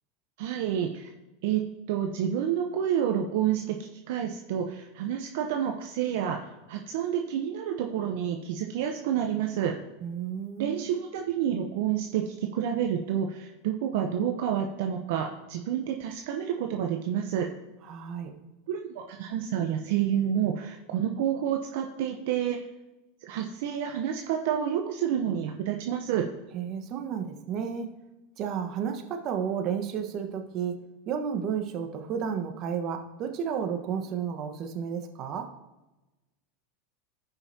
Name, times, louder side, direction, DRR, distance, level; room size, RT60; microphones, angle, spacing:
voice 1, 0.4-1.1 1.4-1.6 1.9-3.8 4.1-6.4 6.7-9.7 10.6-17.5 18.7-22.6 23.2-26.3, right 9 dB, 65° right, 3 dB, 0.8 m, -29 dB
voice 2, 10.0-10.8 17.8-18.3 26.5-27.9 28.4-30.8 31.1-35.5, right 7 dB, 45° right, 5 dB, 1.3 m, -32 dB
16.0 x 5.6 x 2.8 m, 1.0 s
hypercardioid pair, 95°, 0 cm